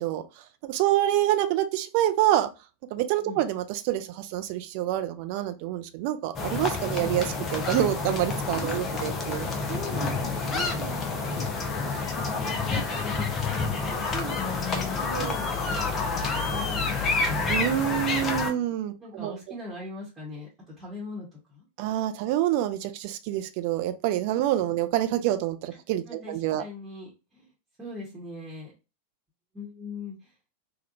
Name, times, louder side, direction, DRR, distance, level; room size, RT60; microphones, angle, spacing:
voice 1, 0.6-2.5 2.9-9.5 15.1-15.4 17.5-19.3 21.8-26.6, right 13 dB, 45° right, 8 dB, 0.4 m, -27 dB
sound 1, 6.3-18.5, left 4 dB, 25° left, 0.7 m, -28 dB
voice 2, 8.6-8.9 9.7-17.4 18.3-18.7 19.0-21.6 24.6-24.8 26.1-27.5 27.8-28.7 29.5-30.3, equal, 15° right, -5 dB, 1.1 m, -41 dB
3.5 x 2.3 x 2.5 m, 0.29 s
figure-of-eight pair, 90°, 0 cm